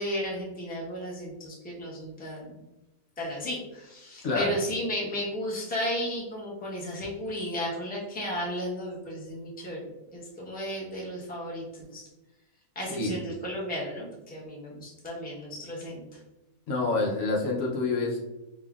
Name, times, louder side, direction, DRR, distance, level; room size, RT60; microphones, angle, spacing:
voice 1, 0.0-2.5 3.2-9.8 10.1-12.0 12.7-16.2, equal, 10° left, -4 dB, 0.7 m, -34 dB
voice 2, 16.7-18.2, left 3 dB, 65° left, -2 dB, 1.0 m, -27 dB
5.2 x 2.7 x 2.4 m, 1.0 s
omnidirectional pair, 1.5 m